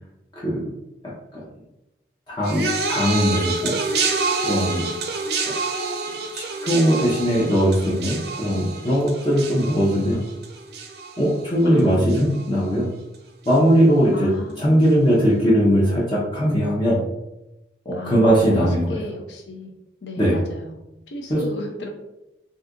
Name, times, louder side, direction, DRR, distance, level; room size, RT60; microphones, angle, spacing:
voice 1, 0.4-0.7 1.0-1.4 2.3-3.8 4.4-4.9 5.5-5.6 6.3-10.2 11.2-12.9 13.5-14.3 14.6-17.0 17.9-18.9 20.2-20.3 21.3-21.4, equal, 25° left, -6 dB, 0.6 m, -20 dB
sound 1, 2.4-11.8 12.1-12.6 13.5-13.6, right 3 dB, 60° right, 0.5 m, -28 dB
voice 2, 11.6-12.6 14.1-15.2 17.9-19.7 20.0-21.9, left 2 dB, 75° left, 2 dB, 0.5 m, -36 dB
2.7 x 2.4 x 3.6 m, 0.93 s
head